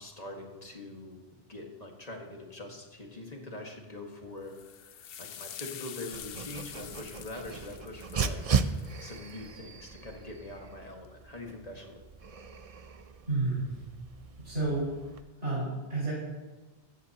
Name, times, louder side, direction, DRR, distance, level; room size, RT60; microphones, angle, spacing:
voice 1, 0.0-4.6 5.2-8.4 9.0-12.0, left 2 dB, 35° left, 1 dB, 1.8 m, -43 dB
sound 1, 4.5-9.3, left 9 dB, 60° left, 0.8 m, -46 dB
Dog, 6.1-15.2, right 5 dB, 45° right, 0.5 m, -36 dB
voice 2, 13.2-13.8 14.4-14.9 15.4-16.1, right 3 dB, 75° right, -9 dB, 5.6 m, -30 dB
15.5 x 14.5 x 2.9 m, 1.2 s
omnidirectional pair, 1.2 m